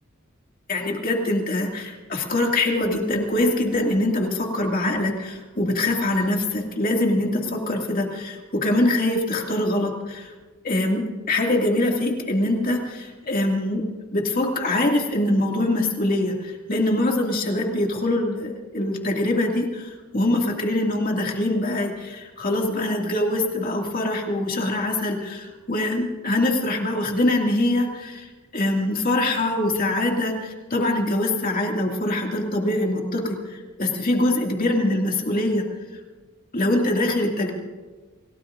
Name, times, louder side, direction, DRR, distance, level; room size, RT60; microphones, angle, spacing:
voice 1, 0.7-10.3 10.6-13.8 14.1-28.3 28.5-35.6 36.5-37.5, left 1 dB, 45° left, 1 dB, 2.4 m, -23 dB
28.0 x 17.0 x 2.6 m, 1.3 s
head